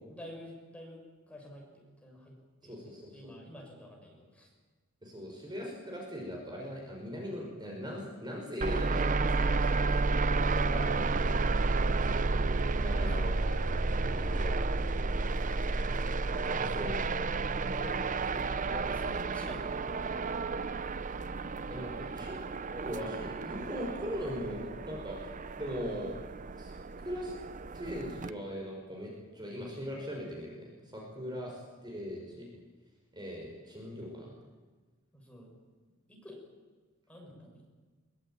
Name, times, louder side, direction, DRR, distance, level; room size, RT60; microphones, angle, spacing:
voice 1, 0.1-1.7 2.0-2.4 2.6-4.5 12.7-13.4 16.6-16.8 17.7-18.0 18.2-19.6 19.9-20.2 25.9-26.1 31.2-31.5 35.1-35.5 36.1-36.4 37.1-37.6, left 1 dB, 5° left, -1 dB, 7.0 m, -49 dB
voice 2, 2.6-3.3 5.0-10.1 10.4-11.3 12.8-13.6 14.0-14.8 16.6-16.9 21.7-22.4 22.7-25.2 25.6-26.1 26.6-27.3 27.7-32.5 33.1-34.3, equal, 20° right, -1 dB, 5.7 m, -40 dB
sound 1, 8.6-28.3, right 3 dB, 40° right, 0.7 m, -31 dB
23.5 x 23.0 x 9.1 m, 1.3 s
head